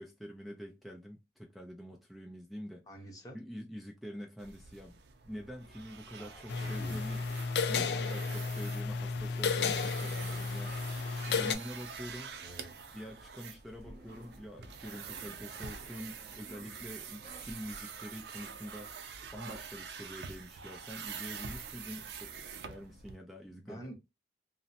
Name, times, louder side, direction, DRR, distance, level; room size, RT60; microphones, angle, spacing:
voice 1, 0.0-2.8 3.3-5.0 5.2-7.2 7.7-12.4 12.9-19.1 19.3-23.9, equal, ahead, 0.4 m, -46 dB
voice 2, 2.9-3.4 6.2-7.1 12.4-12.7 23.5-23.9, right 1 dB, 20° left, 0.8 m, -48 dB
sound 1, 4.4-23.2, right 6 dB, 70° right, 0.5 m, -46 dB
sound 2, 6.5-11.5, left 5 dB, 70° left, 0.4 m, -33 dB
sound 3, 11.2-17.7, right 3 dB, 55° right, 0.9 m, -55 dB
2.7 x 2.0 x 2.5 m
head